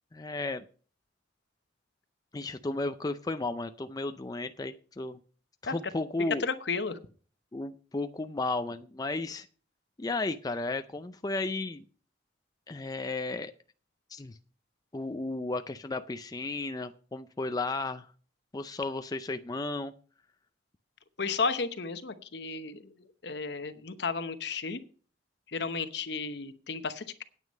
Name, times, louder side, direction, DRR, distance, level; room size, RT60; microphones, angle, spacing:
voice 1, 0.1-0.6 2.3-5.2 5.6-6.5 7.5-9.5 10.0-11.8 12.7-13.5 14.1-14.4 14.9-18.1 18.5-19.9, left 2 dB, 20° left, 9 dB, 0.4 m, -34 dB
voice 2, 6.4-7.0 21.2-24.8 25.5-27.2, left 4 dB, 60° left, 11 dB, 0.9 m, -33 dB
9.3 x 9.2 x 5.4 m, 0.41 s
head